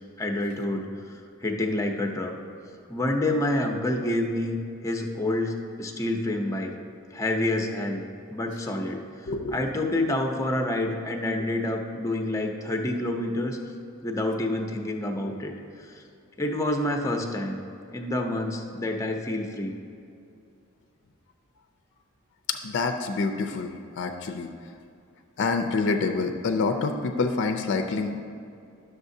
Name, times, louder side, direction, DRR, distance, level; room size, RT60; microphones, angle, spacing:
voice 1, 0.2-2.3 2.9-6.7 7.1-8.0 8.3-13.6 14.0-15.5 15.8-16.0 16.4-17.6 17.9-19.8, left 1 dB, 15° left, 2 dB, 0.6 m, -28 dB
voice 2, 22.5-24.5 25.4-28.2, left 4 dB, 55° left, 5 dB, 0.4 m, -27 dB
11.5 x 6.3 x 2.7 m, 2.5 s
head